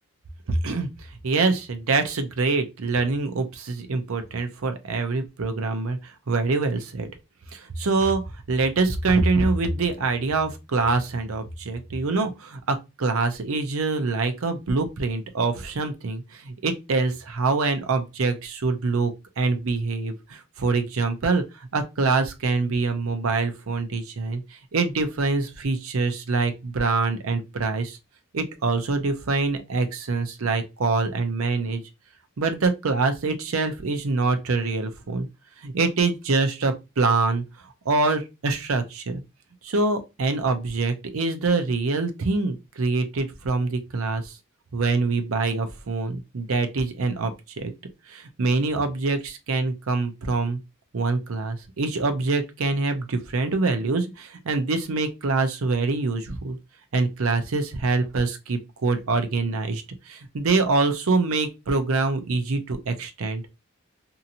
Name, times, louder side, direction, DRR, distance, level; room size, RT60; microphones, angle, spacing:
voice 1, 0.5-0.9 1.2-6.0 6.3-7.1 7.5-8.2 8.5-21.4 21.7-24.4 24.7-28.0 28.3-31.8 32.4-35.3 35.6-37.4 37.9-39.2 39.6-44.3 44.7-47.7 48.1-50.6 50.9-56.6 56.9-63.4, right 3 dB, 70° right, 0.6 m, -25 dB
2.8 x 2.7 x 2.5 m
head